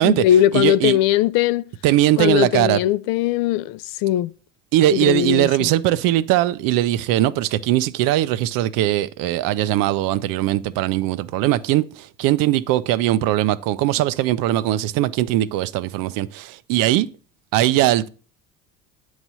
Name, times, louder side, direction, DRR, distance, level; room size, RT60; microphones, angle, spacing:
voice 1, 0.0-1.6 2.2-4.3 4.9-5.7, left 12 dB, 60° left, 0.4 m, -19 dB
voice 2, 0.5-1.0 1.8-2.8 4.7-17.1 17.5-18.1, right 14 dB, 60° right, 0.5 m, -20 dB
8.7 x 3.2 x 5.4 m
hypercardioid pair, 75°, 39 cm